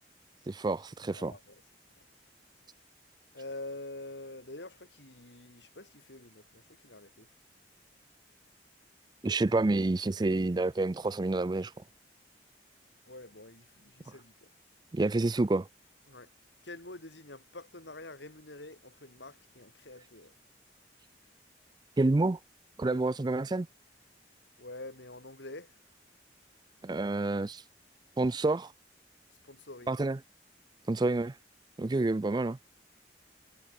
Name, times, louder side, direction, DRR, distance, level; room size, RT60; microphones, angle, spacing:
voice 1, 0.5-1.3 9.2-11.7 14.9-15.7 22.0-22.4 22.8-23.7 26.8-27.6 28.2-28.7 29.9-30.2 30.9-31.4 31.8-32.6, right 2 dB, 25° right, 0.4 m, -28 dB
voice 2, 1.1-1.6 3.3-7.3 13.1-14.5 16.1-16.3 16.6-20.3 22.8-23.0 24.6-25.7 29.4-30.0, left 2 dB, 85° left, 4.0 m, -46 dB
head